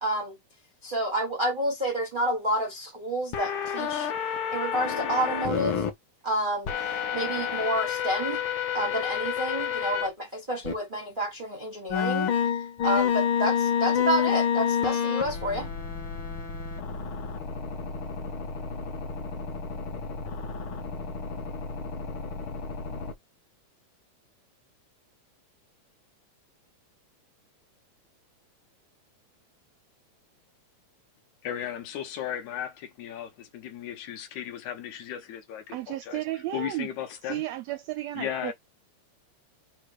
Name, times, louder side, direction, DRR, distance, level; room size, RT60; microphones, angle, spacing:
voice 1, 0.0-0.4 0.8-4.1 4.5-5.8 6.2-8.4 8.7-12.3 12.8-15.7, right 1 dB, 55° right, 0.5 m, -29 dB
sound 1, 3.3-5.9 6.7-10.1 10.6-10.7 11.9-23.1, left 8 dB, 65° left, 1.3 m, -29 dB
voice 2, 31.4-36.2 36.5-37.4 38.2-38.5, left 10 dB, 85° left, 2.2 m, -35 dB
voice 3, 35.7-36.9 37.2-38.5, right 15 dB, 80° right, 1.5 m, -33 dB
5.1 x 2.1 x 4.6 m
omnidirectional pair, 3.3 m